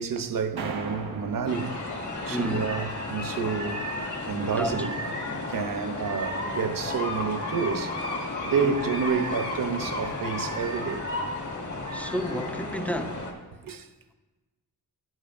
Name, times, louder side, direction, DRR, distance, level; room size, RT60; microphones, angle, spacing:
voice 1, 0.0-1.8 2.3-4.0 4.2-8.0 8.4-11.1 13.6-13.9, right 6 dB, 60° right, 0.8 m, -29 dB
sound 1, 0.6-3.0, right 4 dB, 80° right, 1.3 m, -39 dB
sound 2, 1.5-13.3, left 2 dB, 50° left, 1.7 m, -33 dB
voice 2, 2.3-2.6 4.6-4.9 8.6-8.8 11.9-13.2, equal, 5° left, 0.6 m, -31 dB
14.0 x 10.0 x 2.5 m
wide cardioid pair, 110°, 38 cm